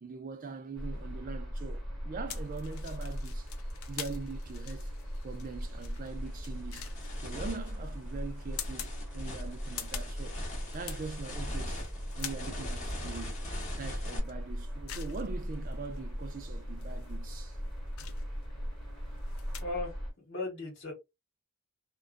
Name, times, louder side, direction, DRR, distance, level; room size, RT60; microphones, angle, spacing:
voice 1, 0.0-3.5 3.9-4.9 5.2-10.4 10.7-11.9 12.2-13.4 13.8-17.6, right 4 dB, 40° right, 0.4 m, -42 dB
sound 1, 0.7-20.1, equal, ahead, 1.1 m, -39 dB
sound 2, 2.3-19.6, left 9 dB, 70° left, 0.5 m, -47 dB
sound 3, 5.3-5.5 6.0-14.2, left 1 dB, 30° left, 0.9 m, -42 dB
voice 2, 19.6-20.9, left 2 dB, 55° left, 1.3 m, -37 dB
2.5 x 2.2 x 2.5 m
head